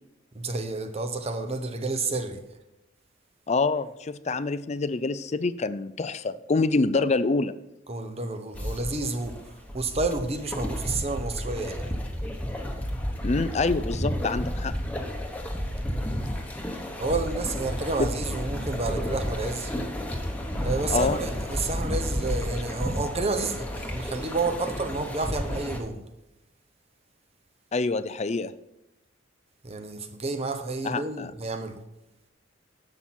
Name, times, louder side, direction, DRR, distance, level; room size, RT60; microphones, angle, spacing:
voice 1, 0.3-2.4 7.9-12.0 17.0-19.7 20.6-26.0 29.6-31.8, right 3 dB, 30° right, 0.9 m, -30 dB
voice 2, 3.5-7.5 13.2-14.7 18.0-18.1 20.9-21.2 27.7-28.5 30.8-31.3, left 3 dB, 35° left, 0.4 m, -26 dB
sound 1, 8.5-25.8, equal, 10° left, 1.1 m, -31 dB
11.5 x 7.3 x 4.3 m
head